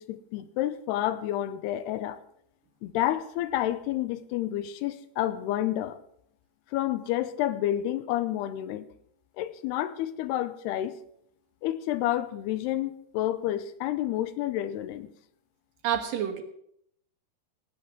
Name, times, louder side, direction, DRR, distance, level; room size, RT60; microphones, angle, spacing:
voice 1, 0.0-2.2 2.8-6.0 6.7-8.9 9.4-10.9 11.6-15.1, left 13 dB, 80° left, 14 dB, 2.8 m, -29 dB
voice 2, 15.8-16.4, right 9 dB, 65° right, 6 dB, 2.7 m, -28 dB
17.0 x 8.9 x 6.0 m, 0.71 s
omnidirectional pair, 4.7 m